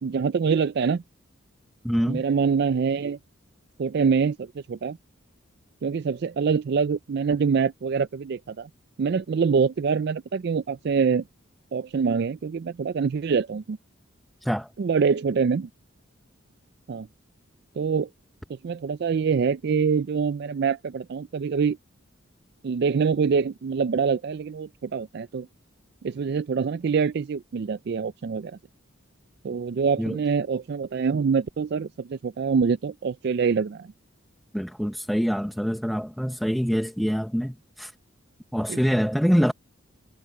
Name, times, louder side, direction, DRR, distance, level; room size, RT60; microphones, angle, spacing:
voice 1, 0.0-1.0 2.1-3.2 3.8-5.0 5.8-8.7 9.0-11.2 11.7-13.8 14.8-15.7 16.9-17.1 17.8-18.1 18.5-21.8 22.6-25.5 26.0-28.6 29.4-33.9 38.7-38.8, right 5 dB, 50° right, 0.3 m, -25 dB
voice 2, 1.8-2.2 14.4-14.7 30.0-30.2 34.5-37.9 38.5-39.5, equal, ahead, 0.8 m, -25 dB
head